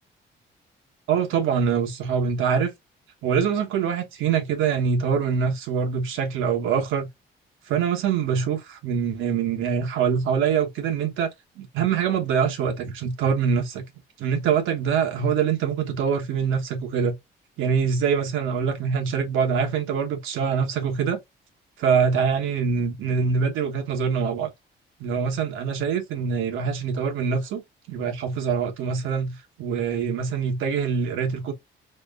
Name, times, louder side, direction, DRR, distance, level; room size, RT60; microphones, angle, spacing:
voice 1, 1.1-2.7 3.2-7.1 7.7-11.3 11.6-13.8 14.2-17.1 17.6-21.2 21.8-24.5 25.0-27.6 27.9-31.5, right 6 dB, 90° right, 1.1 m, -24 dB
4.3 x 3.2 x 2.4 m
cardioid pair, 90°, 20 cm